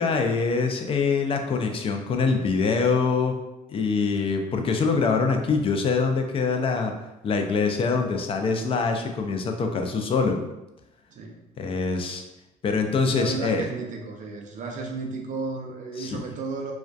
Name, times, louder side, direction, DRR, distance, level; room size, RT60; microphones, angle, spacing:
voice 1, 0.0-3.4 3.7-6.9 7.2-10.4 11.6-12.2 12.6-13.6 16.0-16.2, left 4 dB, 35° left, 4 dB, 0.3 m, -24 dB
voice 2, 11.1-11.4 13.1-16.7, right 4 dB, 50° right, 2 dB, 0.4 m, -33 dB
2.5 x 2.2 x 2.2 m, 0.96 s
cardioid pair, 110°, 17 cm